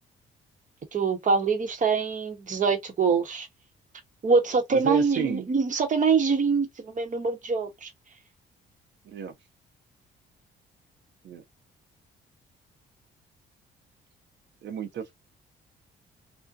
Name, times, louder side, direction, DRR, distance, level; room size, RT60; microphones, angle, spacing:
voice 1, 0.9-3.5 4.2-7.9, right 5 dB, 40° right, 0.9 m, -24 dB
voice 2, 4.7-5.5 9.1-9.3 11.2-11.4 14.6-15.1, right 8 dB, 65° right, 0.7 m, -31 dB
2.6 x 2.1 x 2.3 m
cardioid pair, 90°, 20 cm